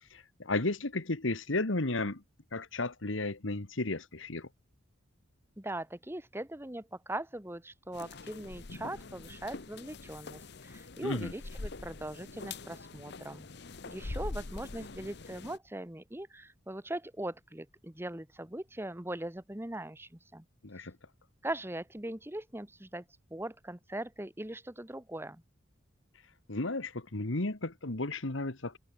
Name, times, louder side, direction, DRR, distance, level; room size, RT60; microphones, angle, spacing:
voice 1, 0.0-2.2 2.5-4.5 11.0-11.3 20.6-20.9 26.5-28.8, left 2 dB, 75° left, 1.8 m, -33 dB
voice 2, 5.6-13.5 13.9-20.4 21.4-23.0 23.3-25.4, right 1 dB, 10° right, 1.3 m, -40 dB
sound 1, 7.9-15.6, left 3 dB, 60° left, 1.0 m, -44 dB
head